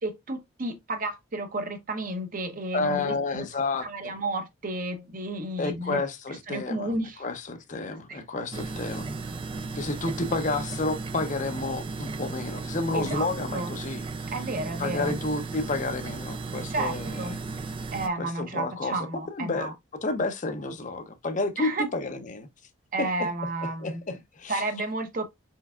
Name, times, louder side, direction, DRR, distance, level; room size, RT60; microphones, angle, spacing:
voice 1, 0.0-3.5 3.8-6.0 6.5-7.2 8.1-8.2 12.9-13.7 14.3-15.2 16.7-17.4 17.9-19.7 21.6-21.9 22.9-24.0 24.5-25.2, right 2 dB, 40° right, 0.7 m, -32 dB
voice 2, 2.7-3.9 5.6-6.9 7.2-9.1 9.8-14.0 14.8-17.4 18.2-19.0 19.3-19.7 20.0-22.5 23.8-24.6, left 3 dB, 35° left, 0.6 m, -30 dB
sound 1, 8.5-18.1, right 3 dB, 25° right, 0.3 m, -35 dB
4.6 x 4.5 x 2.3 m
head